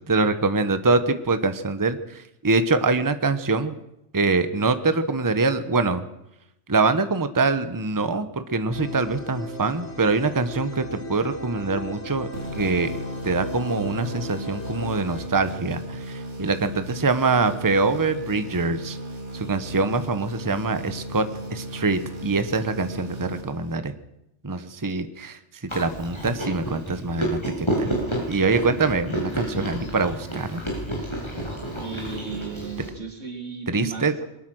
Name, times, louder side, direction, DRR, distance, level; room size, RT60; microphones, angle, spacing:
voice 1, 0.1-3.7 4.1-6.0 6.7-12.3 12.5-19.0 19.3-21.2 21.5-23.9 24.4-25.4 25.7-27.9 28.3-30.6 33.7-34.1, right 3 dB, 20° right, 10 dB, 1.0 m, -24 dB
sound 1, 8.7-15.3, left 1 dB, 65° left, 2.1 m, -36 dB
sound 2, 12.3-24.0, right 1 dB, 70° right, 3.0 m, -36 dB
Chewing mastication, 25.7-32.9, right 1 dB, 20° left, 8.2 m, -30 dB
voice 2, 31.8-34.2, right 4 dB, 85° right, 3 dB, 3.4 m, -35 dB
22.5 x 19.5 x 6.3 m, 0.84 s
omnidirectional pair, 1.2 m